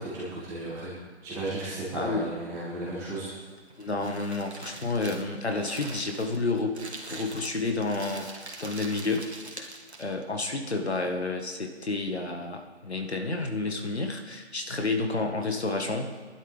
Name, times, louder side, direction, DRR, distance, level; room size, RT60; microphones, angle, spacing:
voice 1, 0.0-3.3, right 2 dB, 10° right, -8 dB, 2.5 m, -35 dB
voice 2, 1.9-2.3 3.8-6.8 7.1-8.3 8.6-9.2 9.6-9.7 10.0-16.1, left 3 dB, 70° left, 4 dB, 1.8 m, -30 dB
Crumpling crinkling, 3.5-10.2, right 2 dB, 70° right, 2.2 m, -43 dB
20.0 x 11.5 x 3.6 m, 1.4 s
figure-of-eight pair, 155°, 34 cm